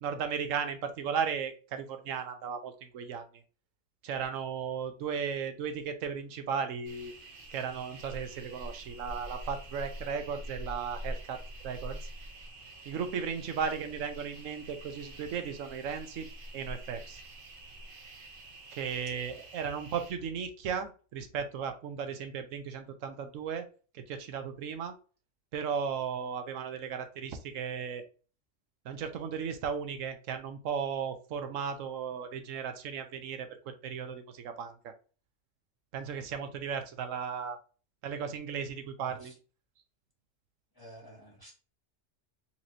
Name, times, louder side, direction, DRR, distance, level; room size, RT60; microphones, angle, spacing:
voice 1, 0.0-3.3 4.0-7.1 7.5-11.4 11.6-12.0 12.9-16.3 16.5-17.2 18.7-23.6 23.9-24.9 25.5-28.0 28.8-34.9 35.9-37.6 38.0-39.3, right 6 dB, 90° right, 8 dB, 1.1 m, -35 dB
sound 1, 6.8-20.1, right 1 dB, 50° right, 0.8 m, -45 dB
voice 2, 39.1-39.4 40.7-41.6, right 1 dB, 20° left, -2 dB, 0.7 m, -51 dB
4.2 x 3.0 x 2.6 m, 0.36 s
omnidirectional pair, 1.3 m